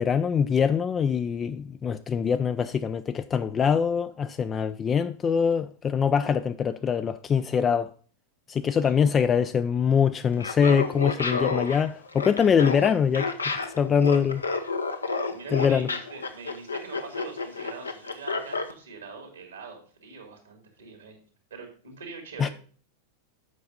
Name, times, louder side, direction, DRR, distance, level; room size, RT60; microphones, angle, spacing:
voice 1, 0.0-7.9 8.5-14.4 15.5-15.9 22.4-22.5, left 7 dB, 25° left, 0.3 m, -24 dB
Laughter, 10.3-18.7, left 4 dB, 75° left, 0.8 m, -30 dB
voice 2, 15.3-21.2 21.5-22.5, right 4 dB, 75° right, 2.1 m, -43 dB
8.0 x 5.6 x 5.1 m
figure-of-eight pair, 90°, 0 cm